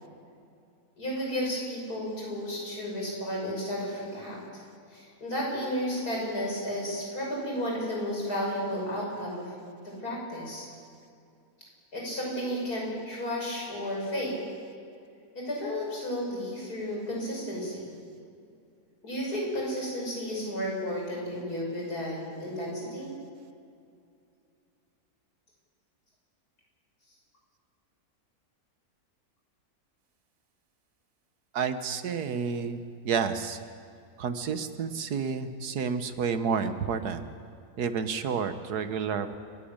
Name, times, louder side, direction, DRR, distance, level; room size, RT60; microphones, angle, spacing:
voice 1, 1.0-4.4 4.9-9.5 9.8-10.7 11.9-14.3 15.3-17.9 19.0-23.1, equal, 75° left, -3 dB, 6.7 m, -33 dB
voice 2, 31.5-32.8 33.1-33.6 34.2-37.2 37.8-39.4, right 6 dB, 90° right, 10 dB, 1.7 m, -30 dB
29.5 x 11.5 x 8.8 m, 2.4 s
omnidirectional pair, 1.6 m